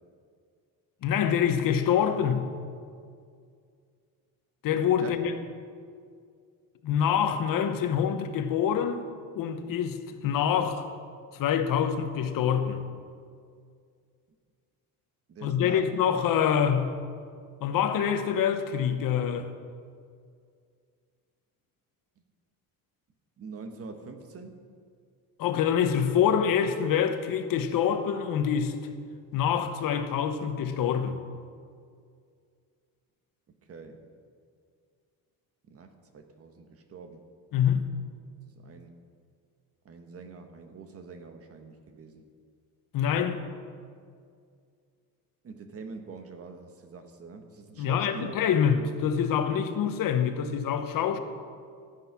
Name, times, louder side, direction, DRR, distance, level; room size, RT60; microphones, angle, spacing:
voice 1, 1.0-2.5 4.6-5.3 6.8-9.0 9.3-10.8 11.3-12.8 15.4-17.0 17.6-19.5 25.4-28.7 29.3-31.2 37.5-37.9 42.9-43.4 47.8-51.2, left 8 dB, 65° left, 1.1 m, -26 dB
voice 2, 5.0-5.3 15.3-15.9 23.4-24.5 33.7-34.0 35.7-37.2 38.6-38.9 39.8-42.2 45.4-48.3, right 4 dB, 40° right, 1.3 m, -44 dB
13.5 x 9.7 x 5.9 m
cardioid pair, 145°, 36 cm